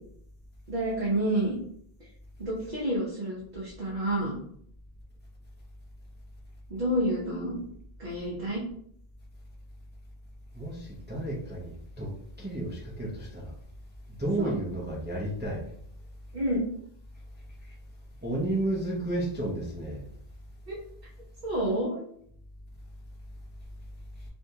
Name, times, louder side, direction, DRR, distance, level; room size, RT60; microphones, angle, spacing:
voice 1, 0.7-1.5 2.4-4.3 6.7-7.6 8.0-8.6 14.4-14.5 16.3-16.7 20.7-20.8 21.4-22.0, right 1 dB, 45° right, -6 dB, 0.9 m, -29 dB
voice 2, 10.5-12.1 12.4-13.5 14.2-15.7 18.2-20.0, right 1 dB, 15° right, -3 dB, 0.5 m, -32 dB
3.3 x 2.7 x 2.7 m, 0.65 s
omnidirectional pair, 1.0 m